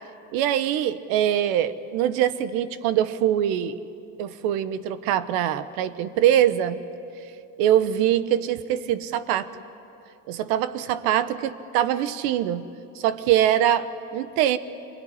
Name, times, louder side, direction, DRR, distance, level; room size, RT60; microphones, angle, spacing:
voice 1, 0.3-3.8 4.2-6.8 7.6-9.5 10.3-12.7 12.9-14.6, right 11 dB, 65° right, 14 dB, 1.2 m, -23 dB
26.0 x 21.5 x 9.9 m, 2.7 s
cardioid pair, 155°, 40 cm